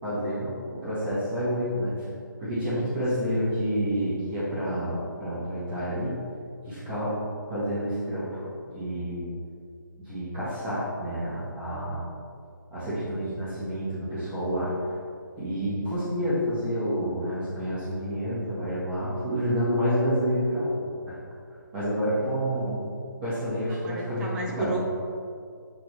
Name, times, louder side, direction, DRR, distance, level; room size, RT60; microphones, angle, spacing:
voice 1, 0.0-1.9 2.4-6.2 6.6-7.2 7.5-8.4 8.7-9.3 10.0-12.1 12.7-14.7 15.4-21.2 21.7-22.9 23.2-24.3 24.5-24.8, equal, 25° right, -12 dB, 1.5 m, -29 dB
voice 2, 23.8-24.8, right 2 dB, 5° right, -2 dB, 0.4 m, -33 dB
8.4 x 3.5 x 3.2 m, 2.3 s
figure-of-eight pair, 145°, 11 cm